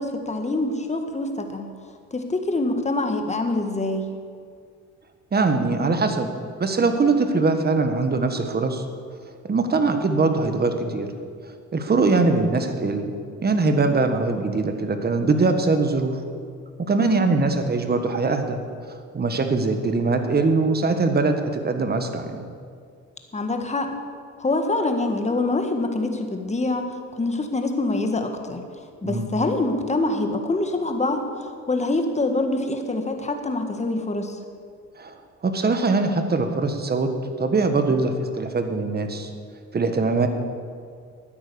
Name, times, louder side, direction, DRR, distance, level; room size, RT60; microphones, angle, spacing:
voice 1, 0.0-1.7 2.1-4.0 17.0-17.2 23.3-23.9 24.4-26.8 27.2-28.6 29.0-34.4, left 2 dB, 25° left, 5 dB, 1.6 m, -25 dB
voice 2, 5.3-6.3 6.6-8.8 9.4-11.1 11.7-13.1 13.4-16.2 16.9-18.6 19.1-22.4 29.0-29.3 35.0-35.1 35.4-37.1 37.4-39.3 39.7-40.3, right 3 dB, 30° right, 7 dB, 1.5 m, -22 dB
12.5 x 9.4 x 7.0 m, 2.2 s
cardioid pair, 90°, 30 cm